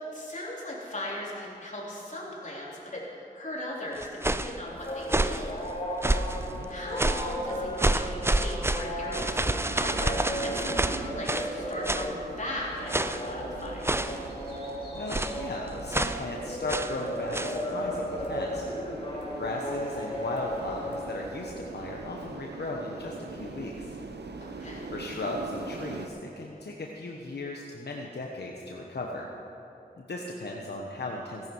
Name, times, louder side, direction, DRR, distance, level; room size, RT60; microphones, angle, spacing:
voice 1, 0.1-5.6 6.3-14.0 24.4-24.9, left 1 dB, 45° left, -5 dB, 3.7 m, -38 dB
sound 1, 4.0-4.6 5.0-5.5 6.0-6.4 7.0-7.4 7.8-11.5 11.9-12.1 12.9-13.3 13.8-14.3 15.1-15.4 15.9-16.2 16.7-17.0 17.3-17.6, right 1 dB, 15° right, 0.5 m, -28 dB
sound 2, 4.7-21.7, equal, 30° left, 3.1 m, -36 dB
sound 3, 6.2-26.1, right 3 dB, 85° right, 0.8 m, -42 dB
voice 2, 6.4-6.7 14.9-18.6 19.4-24.0 24.9-29.3 30.0-31.5, left 2 dB, 80° left, -1 dB, 1.1 m, -36 dB
17.0 x 11.0 x 4.7 m, 2.9 s
wide cardioid pair, 55°, 17 cm